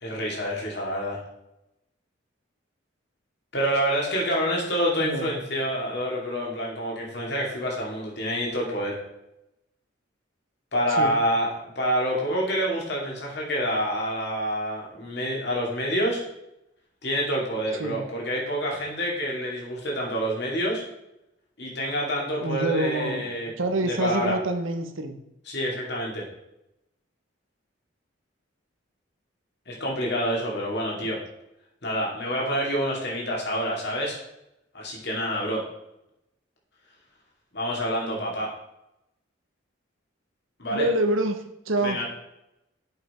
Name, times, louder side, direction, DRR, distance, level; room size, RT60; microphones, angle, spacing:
voice 1, 0.0-1.2 3.5-9.0 10.7-16.2 17.0-20.8 21.6-23.5 23.8-24.4 25.5-26.3 29.7-31.2 31.8-34.2 34.7-35.6 37.5-38.5 40.6-40.9 41.8-42.1, equal, 55° left, -2 dB, 2.5 m, -27 dB
voice 2, 5.0-5.3 10.9-11.1 17.8-18.1 22.4-25.2 40.7-42.0, right 2 dB, 80° right, 7 dB, 1.0 m, -27 dB
7.8 x 5.6 x 4.4 m, 0.87 s
head